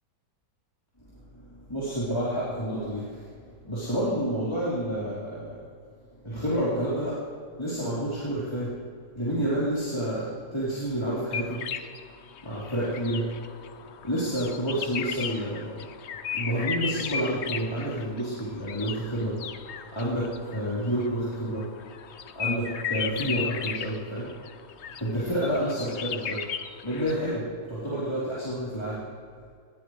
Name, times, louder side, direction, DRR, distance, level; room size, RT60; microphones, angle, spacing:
voice 1, 1.1-3.3 3.6-5.6 6.2-7.2 7.6-8.8 9.1-11.6 12.4-13.3 14.0-15.9 16.3-19.4 19.9-21.7 22.3-24.3 25.0-26.4 26.8-29.0, right 1 dB, 15° left, -10 dB, 4.3 m, -29 dB
sound 1, 11.3-27.4, left 7 dB, 55° left, 0.8 m, -36 dB
21.0 x 17.0 x 3.3 m, 2.2 s
omnidirectional pair, 1.7 m